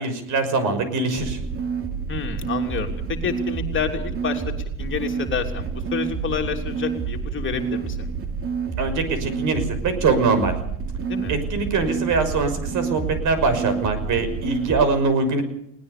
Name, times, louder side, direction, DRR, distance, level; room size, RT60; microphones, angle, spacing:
voice 1, 0.0-1.4 8.8-10.6 11.3-15.4, right 3 dB, 50° right, 10 dB, 6.0 m, -23 dB
sound 1, 1.2-14.9, right 6 dB, 35° right, 2.8 m, -28 dB
voice 2, 2.1-4.4 4.8-8.1 11.1-11.3, left 7 dB, 30° left, 3 dB, 3.4 m, -29 dB
20.5 x 19.5 x 6.9 m, 0.73 s
supercardioid pair, 105°, 38 cm